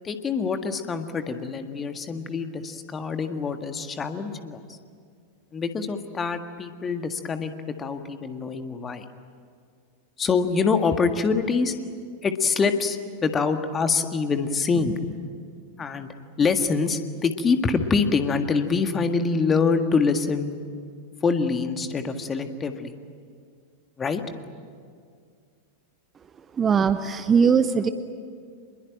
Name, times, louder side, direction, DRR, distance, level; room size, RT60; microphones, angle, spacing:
voice 1, 0.0-4.8 5.5-9.0 10.2-11.8 12.2-15.2 15.8-20.6 21.2-22.9 24.0-24.2, left 5 dB, 20° left, 8 dB, 1.7 m, -25 dB
voice 2, 26.5-27.9, right 6 dB, 20° right, 11 dB, 0.9 m, -20 dB
26.0 x 21.5 x 9.1 m, 2.1 s
figure-of-eight pair, 90°, 0 cm